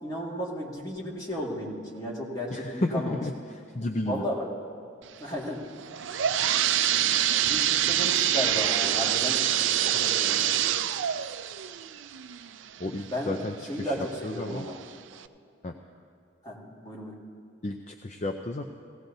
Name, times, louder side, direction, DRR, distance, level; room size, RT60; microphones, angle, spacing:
voice 1, 0.0-3.2 4.1-4.5 5.2-5.7 7.3-9.4 9.8-10.5 13.1-13.4 13.7-14.8 16.4-17.2, equal, 20° left, -4 dB, 1.9 m, -34 dB
voice 2, 2.5-4.2 12.8-13.9 14.2-14.7 15.6-15.7 17.6-18.6, left 1 dB, 35° left, 4 dB, 0.5 m, -32 dB
sound 1, 5.8-13.4 13.9-14.0 14.7-14.8 15.2-15.3, right 11 dB, 70° right, 0.4 m, -26 dB
17.5 x 16.5 x 2.7 m, 2.5 s
head